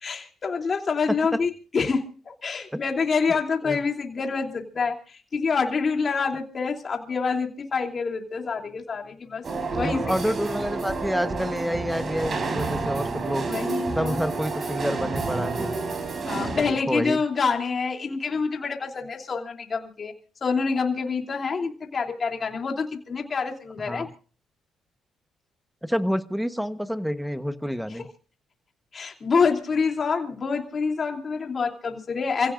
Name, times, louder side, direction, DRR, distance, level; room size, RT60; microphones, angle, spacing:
voice 1, 0.0-2.0 2.4-9.4 9.7-10.3 13.5-14.2 16.2-20.1 20.4-24.1 28.9-32.5, left 5 dB, 40° left, 3 dB, 3.0 m, -27 dB
voice 2, 1.1-1.4 2.7-2.8 3.6-3.8 9.8-13.5 14.0-15.7 16.3-17.2 23.9-24.1 25.8-28.1, equal, ahead, 11 dB, 1.2 m, -28 dB
sound 1, 9.4-16.7, right 3 dB, 45° right, 4.4 m, -29 dB
28.0 x 16.5 x 2.5 m, 0.38 s
cardioid pair, 90°, 0 cm